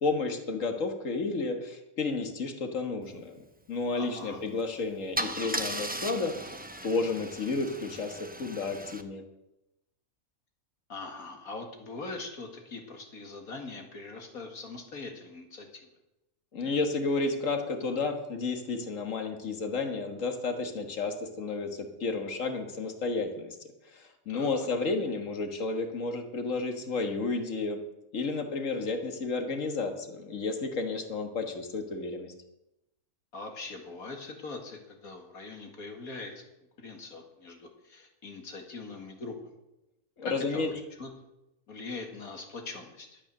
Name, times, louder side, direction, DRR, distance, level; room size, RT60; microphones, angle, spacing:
voice 1, 0.0-6.3 6.8-9.2 16.5-23.6 23.9-27.8 28.1-32.3 40.2-40.7, left 3 dB, 65° left, 5 dB, 1.9 m, -32 dB
voice 2, 3.9-4.4 10.9-15.9 24.3-24.7 33.3-36.4 36.8-39.5 40.4-41.1 41.7-43.2, left 3 dB, 90° left, 3 dB, 2.4 m, -42 dB
Car / Engine starting / Idling, 4.4-4.6 5.2-9.0, right 1 dB, 10° right, 0.5 m, -37 dB
12.0 x 9.0 x 6.6 m, 0.91 s
omnidirectional pair, 1.5 m